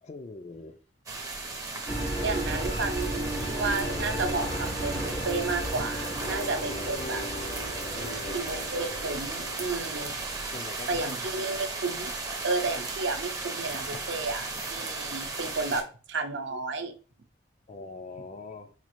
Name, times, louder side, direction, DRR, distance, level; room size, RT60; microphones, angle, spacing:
voice 1, 0.0-0.8 7.9-8.5 10.5-11.3 15.7-15.8 17.7-18.7, left 3 dB, 35° left, 0.3 m, -42 dB
sound 1, 1.1-15.8, right 3 dB, 20° right, 0.5 m, -36 dB
sound 2, 1.9-10.7, right 1 dB, 85° left, 1.9 m, -35 dB
voice 2, 2.2-7.2 8.3-10.2 10.9-12.1 12.4-15.8 16.1-16.9, right 3 dB, 65° right, 0.5 m, -32 dB
sound 3, 3.8-11.3, left 1 dB, 70° left, 0.9 m, -41 dB
4.2 x 2.4 x 3.0 m
head